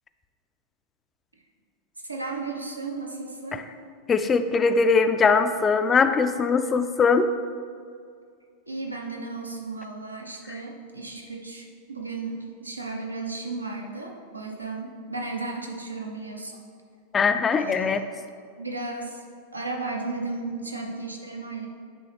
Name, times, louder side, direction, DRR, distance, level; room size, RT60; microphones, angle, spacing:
voice 1, 2.0-3.6 8.7-16.6 17.6-18.0 18.6-19.2 19.5-21.7, right 3 dB, 80° right, 1 dB, 0.7 m, -34 dB
voice 2, 4.1-7.3 17.1-18.0, left 5 dB, 20° left, 9 dB, 0.3 m, -21 dB
9.1 x 3.4 x 3.3 m, 2.3 s
figure-of-eight pair, 90°, 0 cm